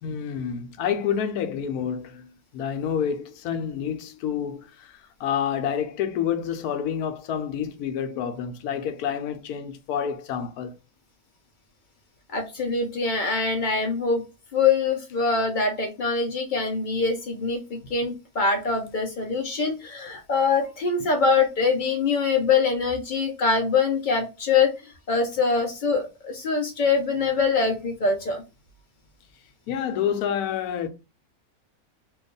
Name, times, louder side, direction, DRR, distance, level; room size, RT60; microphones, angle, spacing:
voice 1, 0.0-10.8 29.7-30.9, left 8 dB, 90° left, 1.1 m, -28 dB
voice 2, 12.3-14.2 14.5-28.4, left 4 dB, 60° left, 0.5 m, -24 dB
2.9 x 2.3 x 3.8 m
omnidirectional pair, 1.6 m